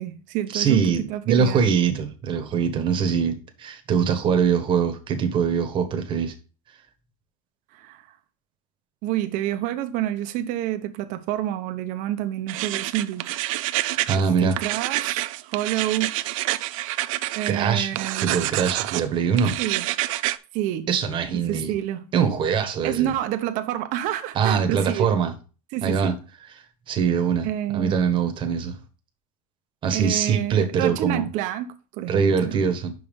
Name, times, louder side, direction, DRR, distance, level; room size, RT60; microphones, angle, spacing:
voice 1, 0.0-1.7 7.7-8.0 9.0-13.2 14.2-16.1 17.4-18.3 19.6-19.9 20.5-20.9 21.5-22.1 22.8-25.2 25.7-26.1 27.4-28.0 29.9-32.6, right 13 dB, 45° right, 0.9 m, -28 dB
voice 2, 0.5-6.3 13.8-14.6 17.5-17.9 18.2-19.6 20.9-21.7 22.1-23.1 24.3-25.3 25.8-26.2 26.9-27.5 27.7-28.8 29.8-31.3 32.1-32.9, right 6 dB, 30° right, 1.3 m, -23 dB
sound 1, 12.5-14.2 14.5-17.5 17.9-19.0 19.4-20.4, right 17 dB, 75° right, 0.5 m, -27 dB
5.7 x 5.6 x 5.2 m
supercardioid pair, 155°, 18 cm